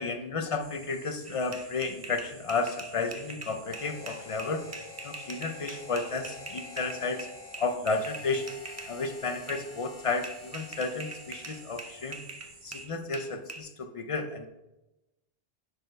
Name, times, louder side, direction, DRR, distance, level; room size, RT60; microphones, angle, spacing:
voice 1, 0.0-4.6 5.0-7.3 7.6-8.5 8.9-12.2 12.6-14.5, left 3 dB, 40° left, 7 dB, 0.6 m, -32 dB
sound 1, 0.6-12.9, right 4 dB, 80° right, 1.2 m, -53 dB
sound 2, 1.2-8.9 9.5-9.7 10.2-13.6, right 2 dB, 25° right, 0.4 m, -43 dB
Harmonica, 3.6-12.3, left 5 dB, 65° left, 1.1 m, -49 dB
10.0 x 4.3 x 3.3 m, 0.97 s
omnidirectional pair, 1.0 m